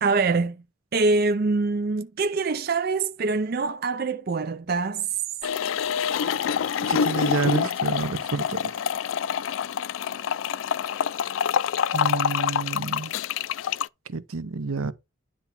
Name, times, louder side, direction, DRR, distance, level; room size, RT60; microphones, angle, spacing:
voice 1, 0.0-0.6 0.9-5.1, right 3 dB, 45° right, 0.5 m, -24 dB
sound 1, 5.4-13.9, left 8 dB, 70° left, 0.3 m, -26 dB
voice 2, 6.9-8.6 11.9-13.1 14.1-14.9, right 4 dB, 85° right, 0.8 m, -29 dB
10.0 x 3.5 x 5.8 m
head